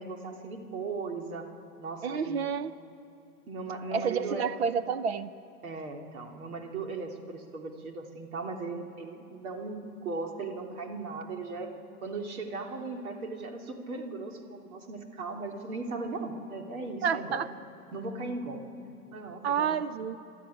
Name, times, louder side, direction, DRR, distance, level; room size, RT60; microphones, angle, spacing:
voice 1, 0.0-1.5 1.8-2.5 3.5-4.5 5.6-11.7 12.0-17.4 17.9-18.6 19.1-19.8, right 3 dB, 70° right, 2 dB, 3.2 m, -37 dB
voice 2, 2.0-2.7 3.9-5.3 17.0-17.5 19.4-20.2, right 6 dB, 45° right, 13 dB, 0.7 m, -29 dB
27.5 x 12.5 x 10.0 m, 2.6 s
hypercardioid pair, 150°, 45 cm